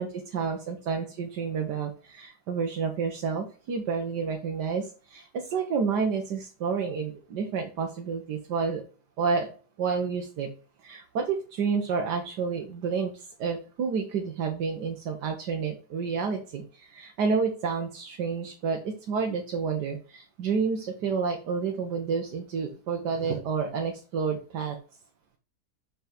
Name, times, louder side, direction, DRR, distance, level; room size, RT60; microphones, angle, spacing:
voice 1, 0.0-8.8 9.2-9.5 9.8-10.5 10.8-24.8, right 5 dB, 80° right, 3 dB, 1.6 m, -30 dB
6.4 x 5.7 x 4.3 m, 0.39 s
omnidirectional pair, 1.8 m